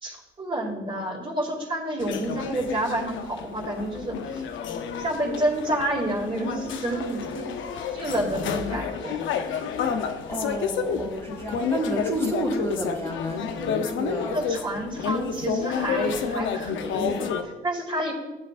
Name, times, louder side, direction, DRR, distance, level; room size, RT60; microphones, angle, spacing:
voice 1, 0.0-4.4 5.0-7.5 7.9-9.2 14.2-18.1, right 1 dB, 25° right, -2 dB, 2.1 m, -29 dB
sound 1, 2.0-17.4, left 6 dB, 75° left, 0.7 m, -30 dB
voice 2, 10.2-14.4, right 1 dB, 10° left, -1 dB, 2.0 m, -30 dB
13.5 x 7.3 x 2.4 m, 1.1 s
cardioid pair, 90°, 20 cm